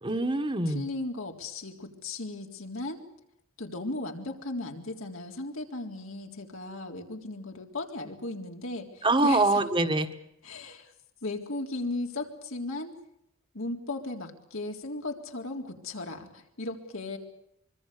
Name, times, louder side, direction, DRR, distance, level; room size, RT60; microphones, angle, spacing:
voice 1, 0.0-0.9 9.0-10.1, right 2 dB, 25° right, 7 dB, 1.6 m, -24 dB
voice 2, 0.7-3.0 3.6-9.6 10.4-10.9 11.2-13.0 13.5-17.2, left 2 dB, 75° left, 3 dB, 3.8 m, -36 dB
24.5 x 24.0 x 6.8 m, 0.79 s
head